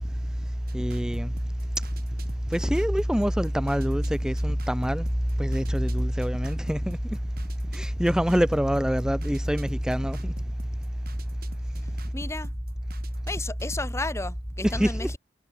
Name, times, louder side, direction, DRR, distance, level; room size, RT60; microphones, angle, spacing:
voice 1, 0.7-1.3 2.5-5.1 5.4-7.0 7.7-10.3 14.6-15.1, equal, 5° right, 0.8 m, -25 dB
sound 1, 0.7-13.8, right 1 dB, 55° right, 5.1 m, -45 dB
voice 2, 12.1-12.5 13.3-15.2, left 2 dB, 15° left, 1.2 m, -33 dB
head